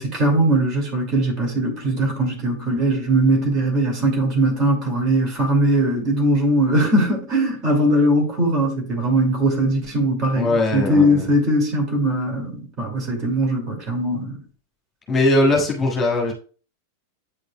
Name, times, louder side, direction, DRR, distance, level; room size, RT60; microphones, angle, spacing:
voice 1, 0.0-14.3, right 1 dB, 30° right, 2.3 m, -20 dB
voice 2, 10.3-11.2 15.1-16.3, left 2 dB, 20° left, 1.7 m, -20 dB
8.9 x 5.2 x 2.2 m
figure-of-eight pair, 90°, 0 cm